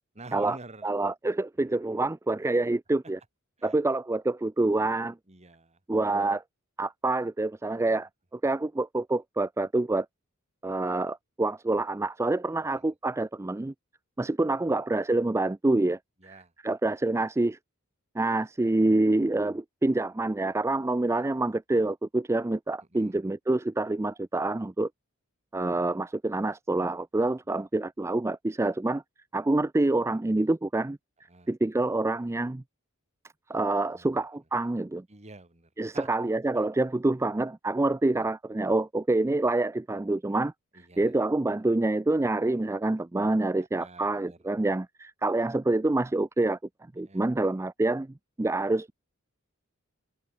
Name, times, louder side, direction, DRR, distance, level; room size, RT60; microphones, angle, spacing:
voice 1, 0.1-0.9 1.6-1.7 3.6-3.8 5.3-5.8 12.7-12.9 14.7-14.8 16.2-16.5 22.9-23.2 27.5-27.6 31.3-31.5 33.9-34.2 35.1-36.1 36.5-36.6 38.2-38.3 40.7-41.1 43.7-44.4 47.0-47.3, right 2 dB, 30° right, 2.7 m, -48 dB
voice 2, 0.8-3.2 3.6-5.2 5.9-6.4 6.8-10.1 10.6-13.7 14.2-17.6 18.1-24.9 25.5-29.0 29.3-31.0 31.5-32.6 33.5-35.0 35.8-40.5 41.0-46.6 47.0-48.9, right 2 dB, 15° right, 0.4 m, -27 dB
head